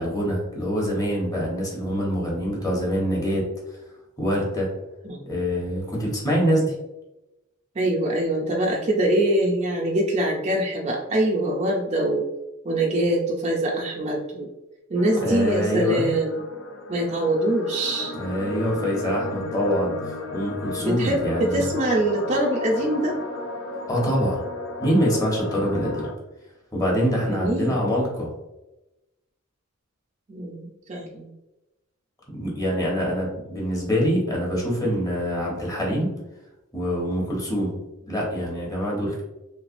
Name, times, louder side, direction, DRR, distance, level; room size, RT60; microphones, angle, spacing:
voice 1, 0.0-3.4 4.2-4.7 5.3-6.7 15.2-16.0 18.1-21.6 23.9-24.4 24.8-26.1 26.7-28.3 32.3-36.1 36.7-37.8 38.1-39.2, equal, 15° left, -3 dB, 1.0 m, -25 dB
voice 2, 7.8-12.3 12.6-14.5 14.9-16.4 16.9-18.1 20.8-23.2 27.3-27.7 30.3-31.3, right 1 dB, 30° right, -1 dB, 0.4 m, -24 dB
sound 1, 14.9-26.1, left 2 dB, 65° left, 0.5 m, -34 dB
3.2 x 3.2 x 2.5 m, 0.99 s
head